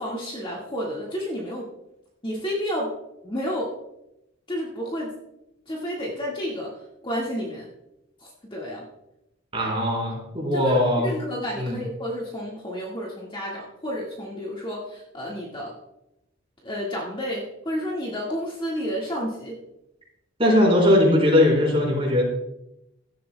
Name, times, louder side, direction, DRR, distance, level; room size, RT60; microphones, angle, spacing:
voice 1, 0.0-1.7 2.2-2.9 3.2-3.7 4.5-5.1 5.7-6.7 7.0-7.7 8.2-8.8 10.5-15.7 16.6-19.6, equal, 25° left, -3 dB, 1.8 m, -30 dB
voice 2, 9.5-11.1 11.6-11.8 20.4-22.2, left 1 dB, 25° right, -2 dB, 3.9 m, -20 dB
16.0 x 12.5 x 2.3 m, 0.86 s
head